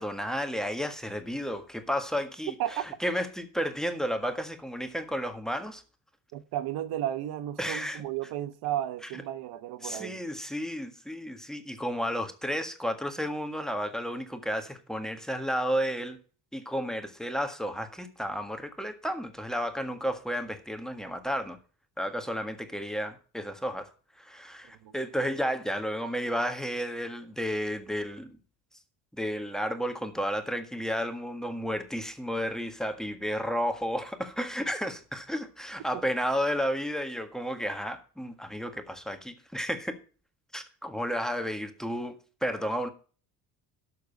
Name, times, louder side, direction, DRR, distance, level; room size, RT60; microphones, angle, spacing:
voice 1, 0.0-5.8 7.6-8.0 9.8-16.2 16.5-21.6 22.0-23.9 24.2-28.4 29.1-40.0 40.5-42.1 42.4-42.9, equal, ahead, 1.6 m, -32 dB
voice 2, 6.3-10.2 24.8-24.9, right 12 dB, 75° right, 1.1 m, -33 dB
12.5 x 6.7 x 5.4 m
cardioid pair, 125°, 38 cm